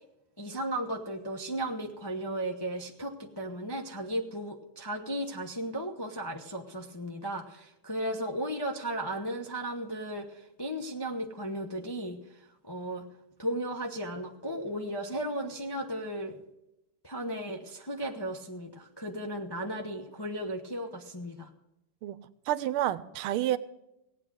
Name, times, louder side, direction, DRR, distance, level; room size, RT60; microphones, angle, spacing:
voice 1, 0.4-12.2 12.6-13.1 13.4-16.4 17.0-21.5, right 1 dB, 35° left, 2 dB, 0.3 m, -35 dB
voice 2, 22.5-23.6, right 13 dB, 85° right, 16 dB, 1.5 m, -29 dB
17.0 x 8.8 x 6.2 m, 0.89 s
omnidirectional pair, 2.3 m